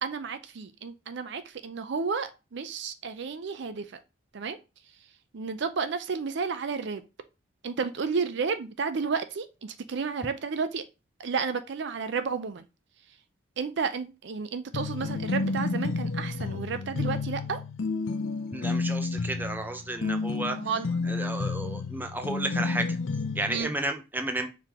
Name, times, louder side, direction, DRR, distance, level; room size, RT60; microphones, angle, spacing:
voice 1, 0.0-4.0 4.3-4.6 5.3-7.0 7.6-10.8 11.2-12.6 13.6-17.6 20.5-20.9 23.5-23.7, right 5 dB, 65° right, 0.5 m, -32 dB
sound 1, 14.7-23.6, left 3 dB, 80° left, 0.5 m, -31 dB
voice 2, 18.5-20.6 21.1-23.0 23.4-24.5, right 2 dB, 10° right, 0.5 m, -32 dB
4.7 x 3.7 x 2.9 m
head